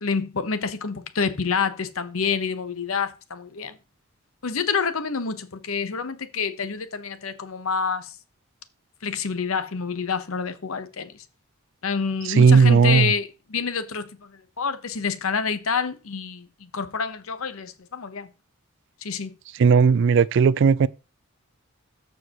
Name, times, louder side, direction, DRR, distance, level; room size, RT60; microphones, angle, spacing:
voice 1, 0.0-3.8 4.4-8.1 9.0-11.1 11.8-18.3 19.0-19.3, left 5 dB, 75° left, 0.9 m, -28 dB
voice 2, 12.4-13.1 19.6-20.9, right 5 dB, 55° right, 0.3 m, -16 dB
14.0 x 4.7 x 2.9 m
head